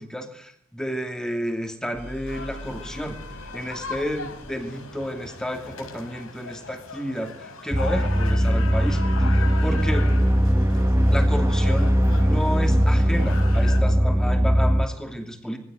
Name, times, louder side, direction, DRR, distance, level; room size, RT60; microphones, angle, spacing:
voice 1, 0.0-3.2 3.5-9.0 9.3-10.1 11.1-11.9 12.2-15.6, equal, 5° left, 5 dB, 2.8 m, -31 dB
sound 1, 1.9-5.5, equal, 40° left, 5.5 m, -43 dB
sound 2, 2.3-13.8, left 4 dB, 80° left, 4.6 m, -38 dB
sound 3, 7.7-14.9, equal, 15° right, 1.1 m, -20 dB
22.5 x 17.0 x 9.4 m, 0.66 s
head